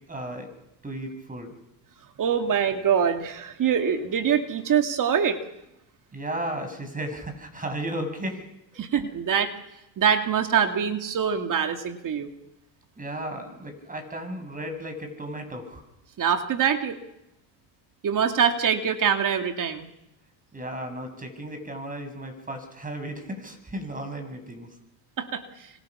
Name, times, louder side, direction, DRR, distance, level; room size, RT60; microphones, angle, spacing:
voice 1, 0.1-0.5 0.8-1.5 6.1-8.4 13.0-15.8 20.5-24.7, right 1 dB, 15° right, 7 dB, 6.7 m, -34 dB
voice 2, 2.2-5.4 8.8-9.5 10.0-12.3 16.2-17.0 18.0-19.9 25.2-25.7, right 7 dB, 40° right, 6 dB, 2.5 m, -24 dB
27.0 x 25.5 x 6.2 m, 0.88 s
supercardioid pair, 90°, 47 cm